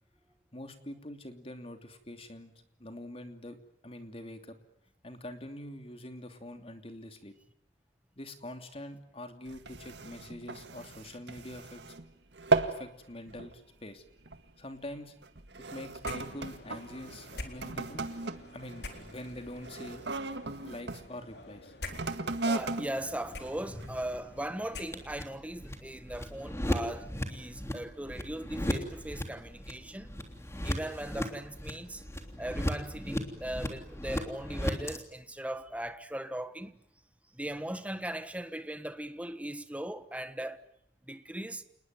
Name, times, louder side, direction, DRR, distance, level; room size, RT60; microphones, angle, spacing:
voice 1, 0.5-2.5 2.8-3.6 3.8-4.5 5.0-7.3 8.2-11.8 12.7-14.0 14.6-15.1 15.7-18.1 18.5-20.1 20.6-21.7, left 1 dB, 35° left, 2.9 m, -44 dB
sound 1, 9.5-12.1 12.3-12.9 13.3-13.6 14.3-14.5 15.2-21.0 21.8-24.2 24.8-24.9, right 3 dB, 80° right, 1.9 m, -36 dB
sound 2, 16.0-25.4, left 2 dB, 65° left, 4.0 m, -48 dB
voice 2, 22.4-30.1 30.6-32.0 32.4-36.8 37.3-40.7 41.1-41.6, right 1 dB, 10° right, 1.3 m, -39 dB
sound 3, 22.9-35.0, equal, 15° left, 3.2 m, -37 dB
28.5 x 20.5 x 9.4 m
head